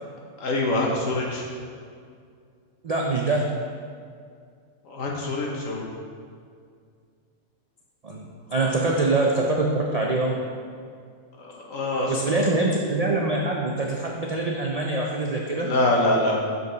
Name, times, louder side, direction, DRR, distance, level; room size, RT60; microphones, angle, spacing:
voice 1, 0.4-1.4 4.8-5.8 8.6-8.7 11.4-12.5 15.6-16.3, left 1 dB, 65° left, -2 dB, 1.4 m, -25 dB
voice 2, 2.8-3.5 8.0-10.3 12.1-15.7, right 2 dB, 85° right, -1 dB, 0.3 m, -24 dB
6.8 x 5.3 x 3.9 m, 2.2 s
omnidirectional pair, 1.5 m